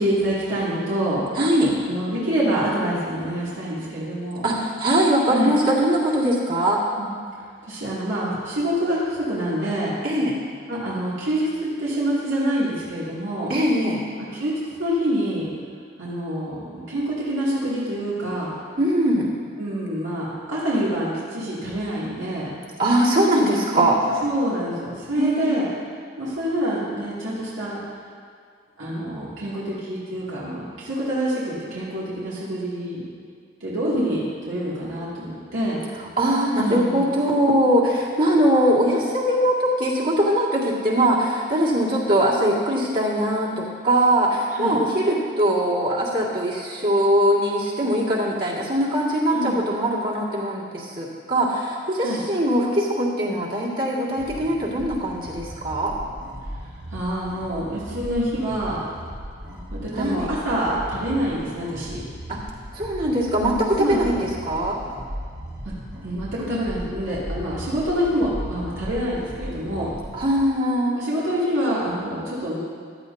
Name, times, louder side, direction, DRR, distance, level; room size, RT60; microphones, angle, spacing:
voice 1, 0.0-1.2 1.8-4.5 5.3-5.5 7.0-7.1 7.7-9.9 10.7-13.5 14.2-15.5 16.0-18.5 19.6-22.5 23.7-25.7 26.2-27.8 28.8-33.0 33.6-35.8 36.6-37.1 44.5-44.8 49.3-49.6 52.0-52.2 56.9-58.8 59.7-62.0 63.8-64.2 66.0-69.9 70.9-72.6, equal, 85° right, -9 dB, 2.4 m, -26 dB
voice 2, 1.3-1.7 4.4-6.8 10.0-10.3 13.5-14.0 18.8-19.3 22.8-24.0 25.1-25.5 36.2-55.9 60.0-60.3 62.3-62.4 62.7-64.8 70.1-70.9, right 1 dB, 45° right, -5 dB, 2.1 m, -21 dB
sound 1, 54.1-70.5, equal, 65° right, 2.8 m, -37 dB
15.0 x 11.5 x 2.7 m, 2.1 s
head